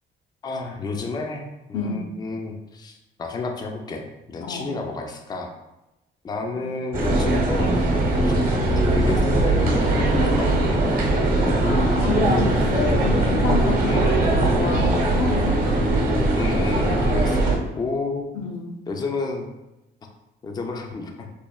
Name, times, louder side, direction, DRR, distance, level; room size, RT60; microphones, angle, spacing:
voice 1, 0.4-5.5 6.2-7.9 8.2-11.2 13.9-14.3 16.3-18.4 18.9-19.5 20.4-21.3, left 3 dB, 20° left, 2 dB, 0.3 m, -31 dB
voice 2, 1.7-2.1 4.4-4.9 11.6-15.6 18.3-18.8, left 3 dB, 80° left, 1 dB, 0.5 m, -29 dB
sound 1, 6.9-17.6, right 1 dB, 45° right, 0.7 m, -20 dB
3.1 x 2.0 x 2.3 m, 0.96 s
cardioid pair, 90°, 20 cm